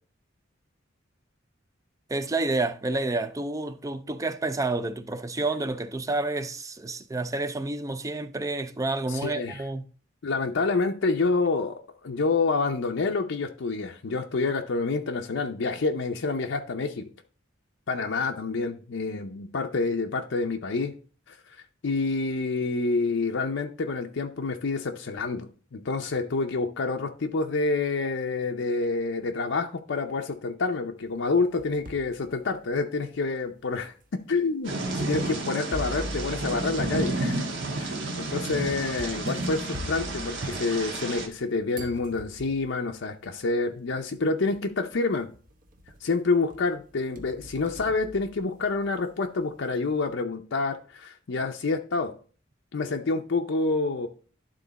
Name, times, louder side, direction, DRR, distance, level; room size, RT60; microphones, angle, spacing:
voice 1, 2.1-9.8, right 2 dB, 15° right, 0.4 m, -29 dB
voice 2, 9.1-9.6 10.2-17.0 17.9-20.9 21.3-21.4 21.8-33.9 34.3-45.3 46.0-52.1 52.7-54.1, left 3 dB, 65° left, 0.6 m, -28 dB
sound 1, 31.2-32.1 32.7-32.8 33.7-33.8 35.7-41.4 41.7-42.8 43.9-44.0 44.5-45.0 45.3-46.1 46.5-48.9, left 1 dB, 45° right, 1.0 m, -41 dB
Thunder / Rain, 34.6-41.3, right 2 dB, 65° right, 1.4 m, -31 dB
11.5 x 3.8 x 4.0 m
head